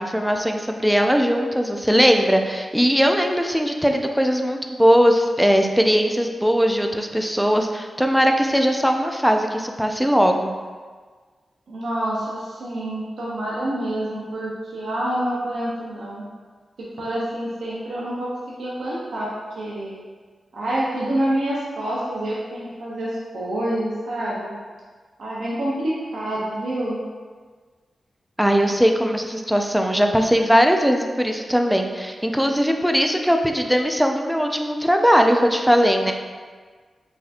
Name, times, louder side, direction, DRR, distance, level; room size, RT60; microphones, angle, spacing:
voice 1, 0.0-10.5 28.4-36.1, equal, ahead, 4 dB, 0.4 m, -19 dB
voice 2, 11.7-16.2 16.8-20.0 20.5-24.5 25.2-27.0, right 1 dB, 80° right, -6 dB, 0.5 m, -27 dB
4.1 x 2.6 x 2.4 m, 1.5 s
cardioid pair, 55°, 0 cm